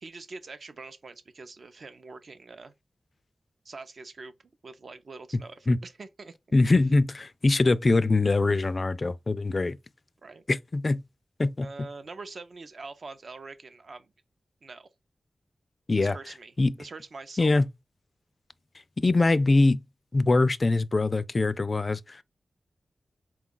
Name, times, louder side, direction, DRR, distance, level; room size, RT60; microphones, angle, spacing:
voice 1, 0.0-2.7 3.6-4.3 4.6-6.3 10.2-10.4 11.6-14.1 14.6-14.9 16.0-17.5, right 3 dB, 55° right, 0.6 m, -44 dB
voice 2, 6.5-9.8 10.5-11.0 11.4-11.7 15.9-16.2 16.6-16.7 17.4-17.7 19.0-19.8 20.1-22.2, left 3 dB, 35° left, 0.3 m, -23 dB
4.4 x 2.3 x 3.7 m
wide cardioid pair, 125°, 0 cm